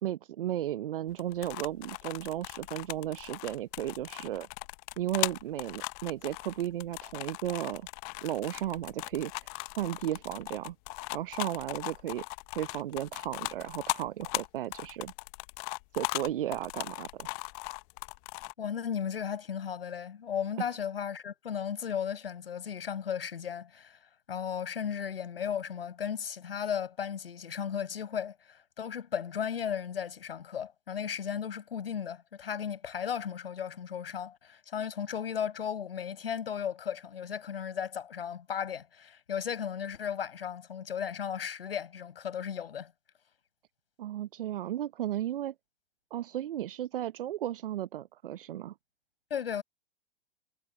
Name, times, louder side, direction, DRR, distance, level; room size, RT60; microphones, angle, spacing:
voice 1, 0.0-4.5 5.0-7.9 8.2-10.7 11.1-12.2 12.5-15.1 15.9-17.3 20.6-20.7 44.0-45.5 46.1-48.7, right 12 dB, 60° right, 1.0 m, -34 dB
sound 1, 1.1-18.5, left 32 dB, 40° left, 1.0 m, -39 dB
voice 2, 18.6-24.0 24.3-42.9 49.3-49.6, left 8 dB, 70° left, 6.1 m, -35 dB
figure-of-eight pair, 100°, 30 cm